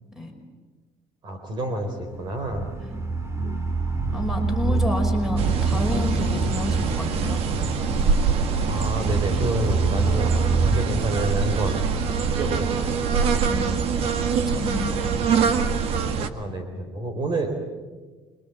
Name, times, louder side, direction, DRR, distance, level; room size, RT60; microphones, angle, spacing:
voice 1, 1.2-2.7 8.6-11.8 12.3-13.0 16.1-17.6, right 2 dB, 45° right, 6 dB, 4.0 m, -29 dB
sound 1, 2.1-10.9, right 3 dB, 25° right, 2.1 m, -26 dB
voice 2, 4.1-7.4 13.5-13.9 14.3-15.5, left 1 dB, 5° right, 4 dB, 5.2 m, -30 dB
sound 2, 5.4-16.3, right 5 dB, 65° right, 1.8 m, -24 dB
26.0 x 23.0 x 8.4 m, 1.3 s
cardioid pair, 120°, 11 cm